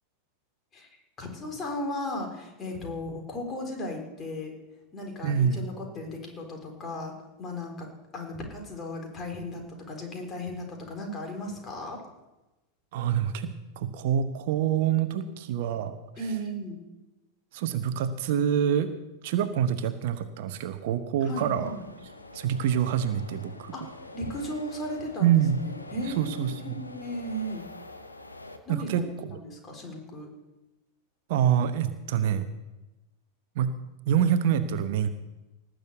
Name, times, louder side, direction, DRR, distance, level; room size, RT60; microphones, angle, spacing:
voice 1, 1.2-4.5 4.9-7.1 7.4-7.9 8.1-12.0 16.2-16.8 21.2-21.9 23.7-23.9 24.1-27.7 28.7-29.1 29.4-30.3, left 1 dB, 25° left, 2 dB, 4.2 m, -36 dB
voice 2, 5.2-5.7 12.9-16.0 17.5-18.9 19.2-21.7 22.3-23.7 25.2-25.6 26.1-26.9 28.7-29.0 29.3-29.4 31.3-32.5 33.6-33.7 34.1-35.1, right 9 dB, 50° right, 10 dB, 0.9 m, -26 dB
sound 1, 21.2-28.6, left 2 dB, 80° left, 1.2 m, -45 dB
18.5 x 6.5 x 8.0 m, 1.0 s
figure-of-eight pair, 90°, 0 cm